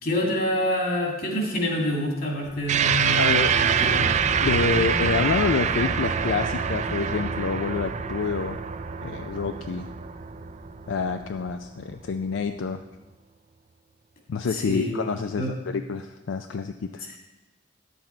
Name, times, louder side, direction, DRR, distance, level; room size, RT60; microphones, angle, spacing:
voice 1, 0.0-4.1 14.5-14.9 15.4-15.5, left 1 dB, 50° left, 0 dB, 2.2 m, -27 dB
sound 1, 2.4-12.4, equal, 15° right, 0.9 m, -38 dB
sound 2, 2.7-11.4, right 7 dB, 40° right, 0.4 m, -25 dB
voice 2, 3.2-3.6 4.4-8.6 9.0-9.9 10.9-12.8 14.3-17.1, left 5 dB, 80° left, 8 dB, 0.4 m, -27 dB
10.5 x 7.9 x 4.4 m, 1.1 s
head